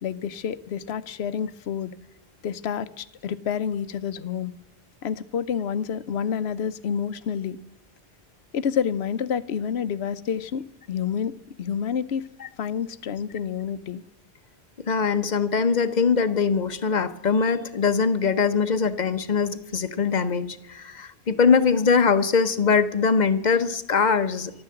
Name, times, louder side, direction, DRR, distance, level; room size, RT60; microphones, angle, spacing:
voice 1, 0.0-1.9 2.4-4.5 5.0-7.6 8.5-11.3 11.6-12.2 12.6-14.0, left 7 dB, 75° left, 15 dB, 1.0 m, -28 dB
voice 2, 14.8-24.5, left 5 dB, 45° left, 11 dB, 1.0 m, -22 dB
13.5 x 12.5 x 7.7 m, 0.84 s
omnidirectional pair, 1.1 m